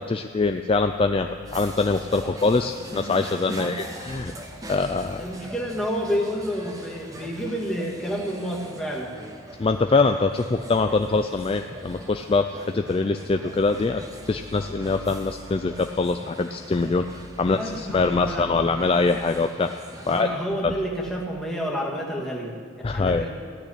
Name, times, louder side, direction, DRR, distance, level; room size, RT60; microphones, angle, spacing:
voice 1, 0.0-4.3 4.7-5.2 9.6-19.7 20.1-20.3 20.6-20.7 22.8-23.3, left 3 dB, 25° left, 7 dB, 0.3 m, -23 dB
sound 1, 1.4-20.2, right 1 dB, 15° right, 1.0 m, -42 dB
voice 2, 5.2-9.1 17.4-18.7 20.0-22.6 22.9-23.3, equal, ahead, -3 dB, 1.8 m, -29 dB
16.0 x 6.6 x 10.0 m, 2.1 s
head